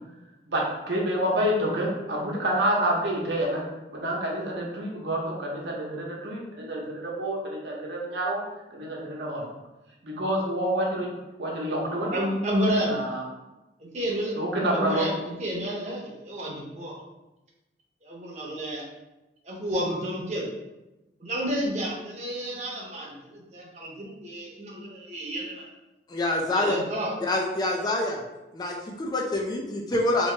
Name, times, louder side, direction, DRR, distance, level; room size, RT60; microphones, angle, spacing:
voice 1, 0.5-8.4 8.7-9.4 10.0-11.1 11.4-12.2 12.9-13.2 14.4-15.0, right 1 dB, 80° right, -2 dB, 0.9 m, -28 dB
voice 2, 12.1-13.0 13.8-14.3 14.7-17.0 18.0-18.8 19.4-20.5 21.2-25.7 26.5-27.2, equal, 40° right, -3 dB, 0.8 m, -30 dB
voice 3, 26.1-26.8 27.2-28.2 28.5-30.3, left 2 dB, 20° left, 0 dB, 0.3 m, -26 dB
2.9 x 2.7 x 3.2 m, 1.0 s
head